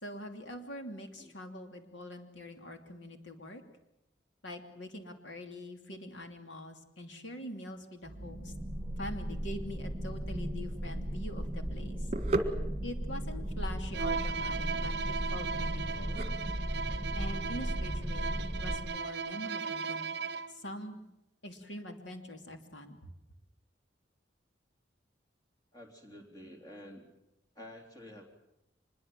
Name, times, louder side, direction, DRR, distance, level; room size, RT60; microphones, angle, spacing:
voice 1, 0.0-3.6 4.4-8.5 9.0-12.1 12.8-16.2 17.1-20.2 20.5-21.0 21.4-23.0, left 1 dB, 80° left, 5 dB, 3.0 m, -44 dB
sound 1, 8.0-18.8, equal, 10° right, 2.8 m, -36 dB
sound 2, 10.8-18.7, right 2 dB, 35° right, 1.9 m, -39 dB
Bowed string instrument, 13.9-20.6, right 5 dB, 60° right, 0.8 m, -37 dB
voice 2, 25.7-27.1 27.5-28.2, left 1 dB, 20° left, 2 dB, 3.5 m, -50 dB
25.0 x 22.0 x 7.7 m, 0.89 s
head